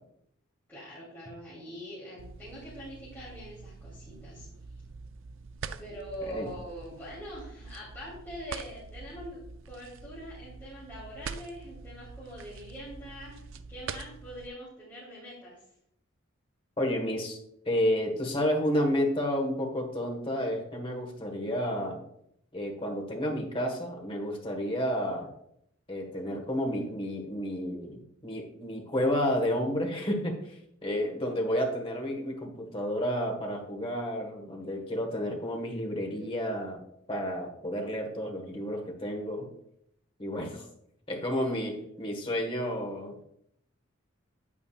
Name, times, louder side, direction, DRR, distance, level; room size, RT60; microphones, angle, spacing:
voice 1, 0.7-4.5 5.8-15.6 41.4-41.9, equal, 10° left, -10 dB, 3.0 m, -43 dB
sound 1, 2.2-14.5, right 5 dB, 70° right, 0.4 m, -45 dB
voice 2, 16.8-17.4 17.6-22.0 22.5-25.3 25.9-30.5 30.8-36.8 37.1-39.5 40.2-40.6 41.1-43.1, equal, 25° left, 1 dB, 1.5 m, -31 dB
9.3 x 8.6 x 2.5 m, 0.73 s
head